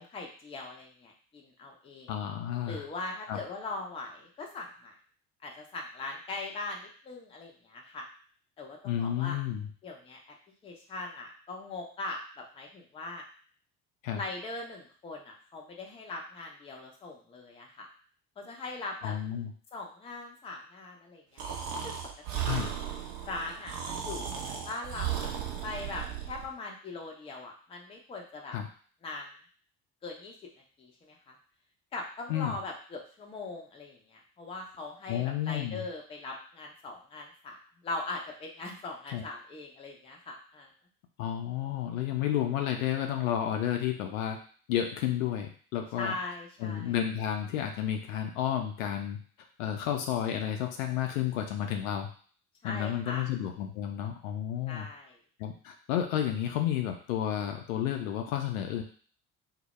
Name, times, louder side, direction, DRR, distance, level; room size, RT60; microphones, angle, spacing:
voice 1, 0.0-2.1 2.7-4.9 5.4-8.1 8.6-9.4 9.8-10.2 10.6-13.2 14.1-17.9 18.4-19.1 19.7-21.4 21.8-21.9 22.3-22.6 23.2-24.4 24.7-25.3 25.6-28.5 29.0-29.3 30.0-30.3 30.8-31.4 31.9-37.6 37.8-40.7 46.0-47.0 52.6-53.3 54.7-55.2, left 3 dB, 15° left, 0 dB, 0.4 m, -40 dB
voice 2, 2.1-2.8 3.3-3.4 8.8-9.7 14.0-14.2 19.0-19.5 22.5-22.7 28.5-28.7 32.3-32.5 35.1-35.8 39.1-39.2 41.2-44.4 44.7-46.1 46.6-49.2 49.6-52.1 52.6-54.9 55.4-58.8, left 10 dB, 65° left, 4 dB, 0.5 m, -31 dB
Breathing, 21.4-26.5, right 9 dB, 60° right, 0.6 m, -35 dB
2.0 x 2.0 x 3.0 m, 0.44 s
figure-of-eight pair, 55°, 43 cm